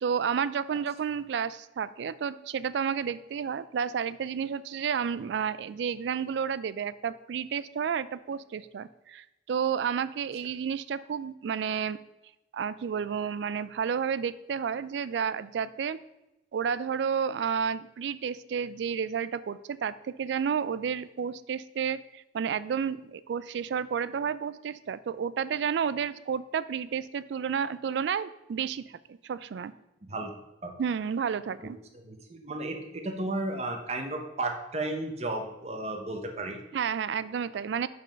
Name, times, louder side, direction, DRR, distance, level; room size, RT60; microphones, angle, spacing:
voice 1, 0.0-12.0 12.5-16.0 16.5-29.0 29.2-29.7 30.8-31.8 36.7-37.9, right 7 dB, 70° right, 16 dB, 0.3 m, -31 dB
voice 2, 30.0-30.3 30.6-30.7 31.9-36.6, right 2 dB, 35° right, 4 dB, 0.8 m, -34 dB
5.5 x 5.3 x 5.2 m, 0.93 s
head